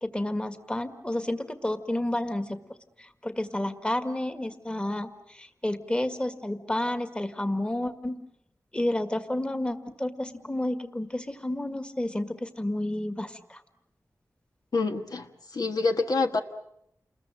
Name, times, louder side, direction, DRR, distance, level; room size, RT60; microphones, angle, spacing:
voice 1, 0.0-2.6 3.0-8.2 8.7-13.6, left 1 dB, 15° left, 9 dB, 1.7 m, -30 dB
voice 2, 14.7-16.4, left 3 dB, 70° left, 5 dB, 1.5 m, -27 dB
29.0 x 21.5 x 7.7 m, 0.76 s
wide cardioid pair, 95°, 7 cm